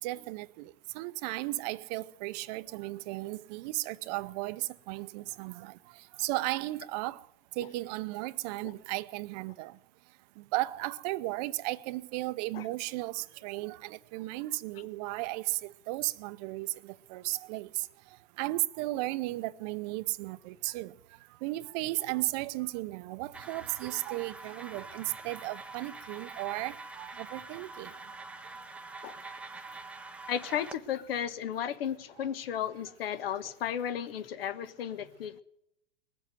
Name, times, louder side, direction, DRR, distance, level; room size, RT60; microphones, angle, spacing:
voice 1, 0.0-7.3 7.6-9.8 10.4-20.9 21.4-27.9 32.2-32.3, right 19 dB, 45° right, 0.7 m, -35 dB
sound 1, 23.3-30.7, right 3 dB, 5° right, 0.7 m, -45 dB
voice 2, 30.3-35.4, left 9 dB, 70° left, 1.3 m, -34 dB
20.5 x 7.6 x 9.2 m
hypercardioid pair, 130°, 30 cm